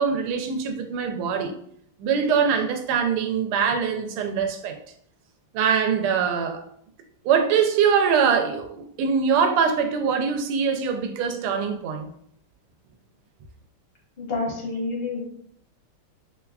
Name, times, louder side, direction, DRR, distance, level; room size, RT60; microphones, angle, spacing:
voice 1, 0.0-1.5 2.0-4.8 5.5-6.6 7.2-12.1, right 6 dB, 85° right, 4 dB, 1.5 m, -23 dB
voice 2, 14.2-15.2, left 3 dB, 50° left, -3 dB, 0.7 m, -28 dB
5.2 x 2.2 x 2.3 m, 0.66 s
omnidirectional pair, 2.4 m